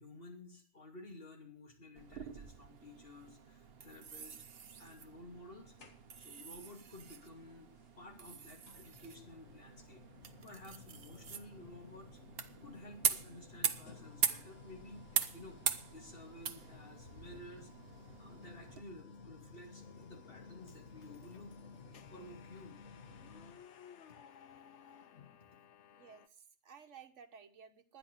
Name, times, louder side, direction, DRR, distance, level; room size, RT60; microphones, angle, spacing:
voice 1, 0.0-4.4 4.8-5.7 6.2-7.7 8.0-15.6 15.9-17.7 18.2-21.5 22.1-22.8, left 1 dB, 45° left, 3 dB, 2.7 m, -54 dB
sound 1, 2.0-18.8, right 7 dB, 55° right, 1.1 m, -42 dB
sound 2, 5.8-6.4 7.8-7.9 8.6-23.7, left 4 dB, 90° left, 2.1 m, -56 dB
sound 3, 19.4-26.3, left 8 dB, 70° left, 1.0 m, -59 dB
voice 2, 26.0-28.0, right 7 dB, 70° right, 5 dB, 1.5 m, -56 dB
11.0 x 10.0 x 6.4 m, 0.39 s
omnidirectional pair, 1.3 m